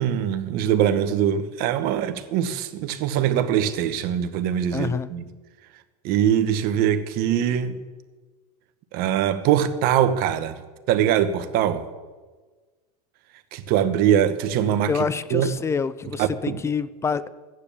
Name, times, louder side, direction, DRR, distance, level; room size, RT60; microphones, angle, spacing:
voice 1, 0.0-5.2 6.0-7.8 8.9-10.6 10.9-11.9 13.5-14.9 15.3-15.5 16.2-16.6, right 10 dB, 50° right, 1.3 m, -22 dB
voice 2, 4.7-5.1 14.9-17.3, left 5 dB, 15° left, 0.6 m, -27 dB
14.0 x 9.9 x 7.1 m
supercardioid pair, 120°, 19 cm